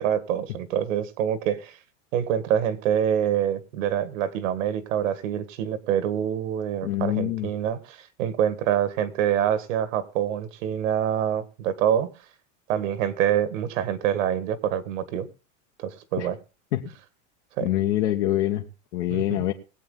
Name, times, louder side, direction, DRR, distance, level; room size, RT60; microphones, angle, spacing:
voice 1, 0.0-1.7 2.1-12.1 12.7-15.3 15.8-16.4 17.6-17.7 19.1-19.4, right 10 dB, 80° right, 1.7 m, -26 dB
voice 2, 6.8-7.5 16.2-16.3 16.7-16.9 17.6-18.7 18.9-19.5, left 14 dB, 65° left, 1.5 m, -25 dB
21.5 x 8.2 x 3.8 m
supercardioid pair, 155°, 38 cm